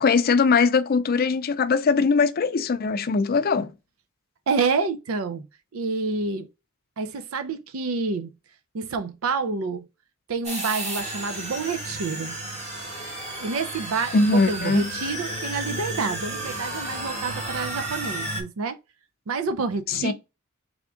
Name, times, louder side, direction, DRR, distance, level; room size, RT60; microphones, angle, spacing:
voice 1, 0.0-3.7 14.1-14.9 20.0-20.1, left 4 dB, 45° left, 0.4 m, -21 dB
voice 2, 4.5-5.4 5.7-6.5 7.0-8.3 8.7-9.8 10.3-12.4 13.4-18.8 19.3-20.1, right 4 dB, 90° right, 0.5 m, -28 dB
sound 1, 10.4-18.4, right 1 dB, 35° right, 1.3 m, -32 dB
3.5 x 3.5 x 3.7 m
head